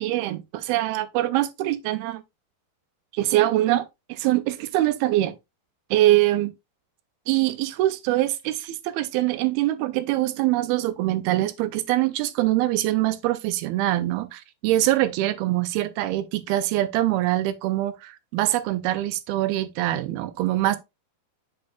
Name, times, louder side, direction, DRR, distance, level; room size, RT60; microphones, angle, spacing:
voice 1, 0.0-2.2 3.1-5.3 5.9-6.5 7.3-20.8, right 15 dB, 85° right, 2.5 m, -23 dB
7.7 x 5.8 x 2.3 m
omnidirectional pair, 4.4 m